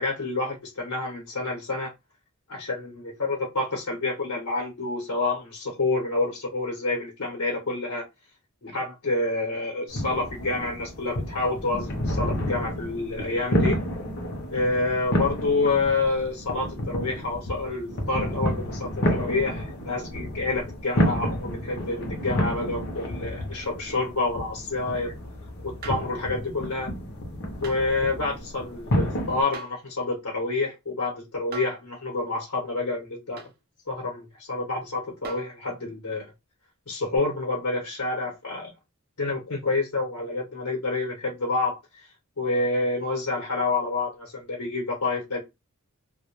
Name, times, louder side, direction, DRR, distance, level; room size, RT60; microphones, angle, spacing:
voice 1, 0.0-1.9 2.5-8.1 8.6-13.8 14.5-25.1 25.6-26.9 27.6-33.5 33.9-36.3 36.9-38.7 39.2-42.1 42.4-45.4, left 3 dB, 75° left, 0.9 m, -28 dB
sound 1, 9.9-29.4, equal, 50° left, 0.6 m, -30 dB
sound 2, 25.8-26.2 27.6-27.8 29.5-29.9 31.5-31.9 33.4-33.6 35.2-35.6 37.1-37.2, right 4 dB, 40° right, 0.5 m, -40 dB
2.1 x 2.1 x 2.9 m
head